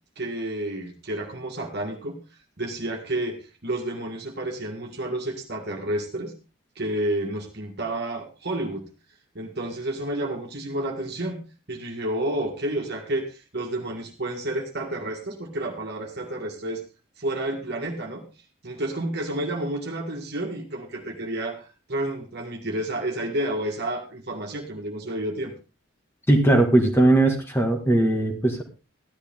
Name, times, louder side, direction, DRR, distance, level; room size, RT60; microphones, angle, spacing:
voice 1, 0.2-2.2 2.6-6.3 6.8-8.9 9.4-16.8 17.2-18.2 18.6-25.5, right 1 dB, 50° right, 2 dB, 2.0 m, -30 dB
voice 2, 26.3-28.6, right 1 dB, 10° left, 2 dB, 1.9 m, -19 dB
14.5 x 11.5 x 3.7 m, 0.32 s
head